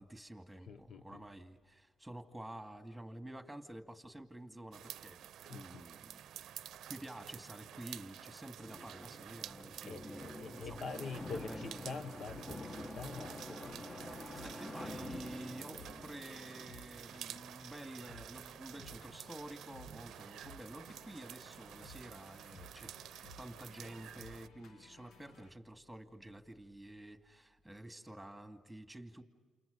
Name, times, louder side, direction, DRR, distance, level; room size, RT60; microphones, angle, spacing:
voice 1, 0.0-5.2 5.5-6.3 6.9-10.8 11.3-11.8 14.3-22.9 23.4-29.2, right 1 dB, 5° right, 2.4 m, -50 dB
voice 2, 0.6-1.2 5.5-5.9 9.6-14.1, left 4 dB, 55° left, 1.0 m, -46 dB
sound 1, 4.7-24.5, right 10 dB, 75° right, 0.6 m, -51 dB
sound 2, 8.6-17.4, left 1 dB, 20° left, 1.4 m, -48 dB
sound 3, 10.6-25.5, left 3 dB, 75° left, 1.5 m, -58 dB
29.0 x 29.0 x 5.4 m
cardioid pair, 90°, 0 cm